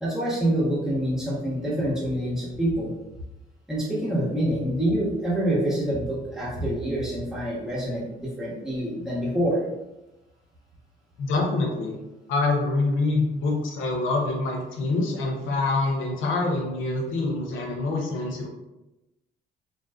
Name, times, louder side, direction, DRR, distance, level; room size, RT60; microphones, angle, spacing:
voice 1, 0.0-2.9 3.7-9.6, right 1 dB, 5° right, -7 dB, 0.9 m, -26 dB
voice 2, 11.2-12.0 12.3-18.5, left 3 dB, 80° left, 0 dB, 0.6 m, -25 dB
2.6 x 2.2 x 2.3 m, 0.97 s
cardioid pair, 90°, 20 cm